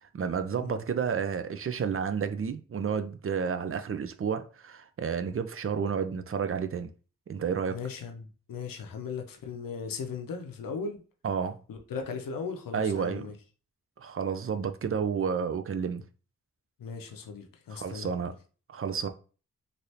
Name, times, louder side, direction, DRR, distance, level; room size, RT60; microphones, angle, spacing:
voice 1, 0.0-6.9 7.3-7.8 11.2-11.6 12.7-13.3 14.0-16.0 17.7-18.3 18.7-19.1, right 6 dB, 40° right, 0.5 m, -31 dB
voice 2, 7.7-11.0 11.7-13.3 16.8-18.1, left 5 dB, 80° left, 0.7 m, -37 dB
3.2 x 2.6 x 2.8 m
cardioid pair, 55°, 33 cm